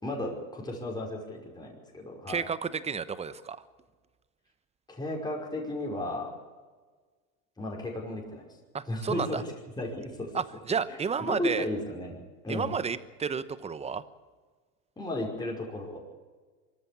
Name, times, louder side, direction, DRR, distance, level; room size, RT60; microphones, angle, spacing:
voice 1, 0.0-2.4 4.9-6.3 7.6-8.4 8.9-9.4 9.8-10.3 10.9-12.8 15.0-16.0, left 1 dB, 10° left, -1 dB, 5.3 m, -34 dB
voice 2, 2.3-3.6 8.7-9.4 10.3-11.7 12.5-14.0, right 6 dB, 15° right, 15 dB, 1.0 m, -31 dB
24.5 x 14.0 x 8.6 m, 1.4 s
hypercardioid pair, 115°, 42 cm